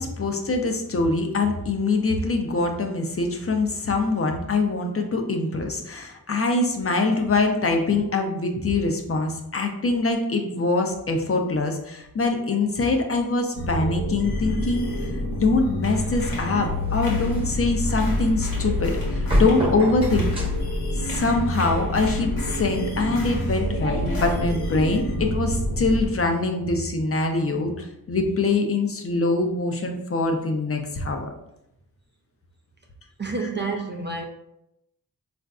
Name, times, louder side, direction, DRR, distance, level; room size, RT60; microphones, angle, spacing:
voice 1, 0.0-14.9 15.4-20.3 21.0-31.3, left 3 dB, 40° left, 0.5 m, -24 dB
sound 1, 13.6-26.1, left 1 dB, 90° left, 0.7 m, -27 dB
sound 2, 15.8-17.6 17.9-20.7 21.0-24.4, left 1 dB, 65° left, 1.0 m, -38 dB
sound 3, 16.1-22.4, equal, 15° right, 0.9 m, -31 dB
voice 2, 33.2-34.3, right 3 dB, 30° right, 0.4 m, -29 dB
3.8 x 2.5 x 2.3 m
cardioid pair, 60°, 37 cm